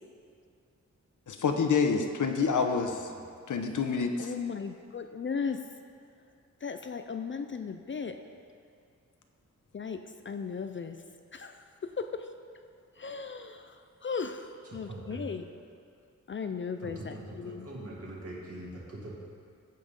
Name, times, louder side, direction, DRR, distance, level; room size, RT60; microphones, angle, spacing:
voice 1, 1.3-3.1 3.5-4.3, left 5 dB, 85° left, 5 dB, 0.9 m, -27 dB
voice 2, 2.8-3.2 14.7-15.3 16.8-19.1, right 1 dB, 50° right, -3 dB, 2.1 m, -43 dB
voice 3, 4.2-5.6 6.6-8.2 9.7-11.0 11.3-12.3 13.0-15.5 16.3-17.7, left 5 dB, 40° left, 7 dB, 0.4 m, -36 dB
15.0 x 5.8 x 5.3 m, 2.3 s
wide cardioid pair, 155°, 30 cm